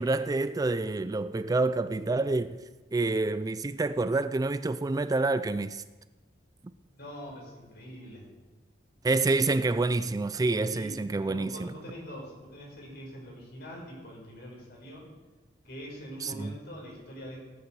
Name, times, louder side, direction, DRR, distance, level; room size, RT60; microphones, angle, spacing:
voice 1, 0.0-2.6 2.9-5.8 9.0-11.7 16.2-16.5, right 3 dB, 20° right, 0.3 m, -27 dB
voice 2, 7.0-8.3 10.7-10.9 11.2-15.1 15.6-17.4, equal, 60° left, 5.2 m, -44 dB
17.5 x 9.4 x 4.7 m
head